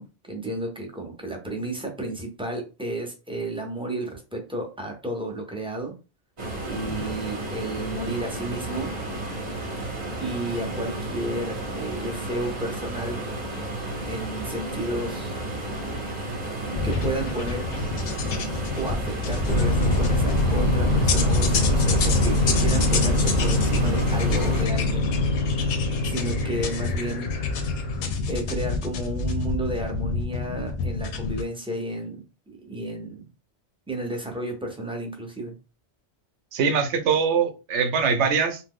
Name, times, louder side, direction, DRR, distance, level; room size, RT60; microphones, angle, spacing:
voice 1, 0.0-5.9 6.7-8.9 10.2-13.2 14.1-15.4 16.8-17.7 18.8-25.5 26.1-27.3 28.3-33.3 33.9-35.5, right 1 dB, 5° right, 1 dB, 0.4 m, -32 dB
sound 1, 6.4-24.7, right 2 dB, 40° right, 0.8 m, -32 dB
sound 2, 16.7-31.4, left 4 dB, 80° left, 0.9 m, -29 dB
sound 3, 19.5-28.1, left 1 dB, 50° left, 0.6 m, -24 dB
voice 2, 36.5-38.6, right 6 dB, 80° right, 8 dB, 0.9 m, -22 dB
3.0 x 2.0 x 3.6 m, 0.31 s
omnidirectional pair, 1.2 m